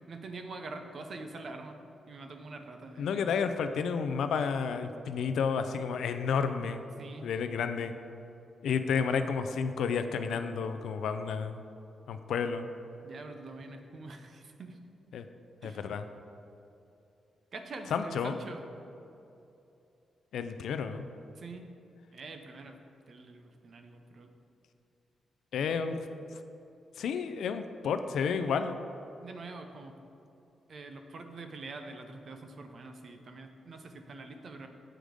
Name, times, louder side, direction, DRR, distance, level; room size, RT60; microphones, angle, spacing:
voice 1, 0.1-1.8 2.1-3.3 7.0-7.3 13.0-14.8 15.6-15.8 17.5-18.6 21.4-21.7 22.1-22.8 23.1-24.3 29.2-29.9 30.7-34.7, right 3 dB, 40° right, 6 dB, 0.6 m, -45 dB
voice 2, 3.0-6.8 7.2-8.0 8.6-11.6 12.1-12.7 15.1-15.3 15.6-16.0 17.9-18.4 20.3-21.0 25.5-26.1 27.0-28.9, left 6 dB, 75° left, 9 dB, 0.4 m, -31 dB
7.7 x 4.9 x 5.1 m, 2.8 s
wide cardioid pair, 180°, 0 cm